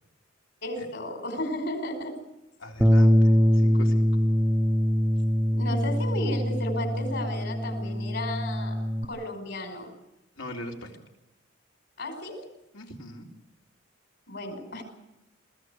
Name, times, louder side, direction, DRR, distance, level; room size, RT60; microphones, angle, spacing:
voice 1, 0.6-2.2 5.5-8.8 9.0-9.9 12.0-12.4 14.3-14.8, left 1 dB, 60° left, 5 dB, 5.4 m, -34 dB
voice 2, 2.6-4.1 10.4-11.0 12.7-13.3, equal, 80° left, 1 dB, 3.7 m, -40 dB
Bass guitar, 2.8-9.1, equal, 5° right, 0.9 m, -23 dB
22.5 x 16.0 x 8.3 m, 0.95 s
head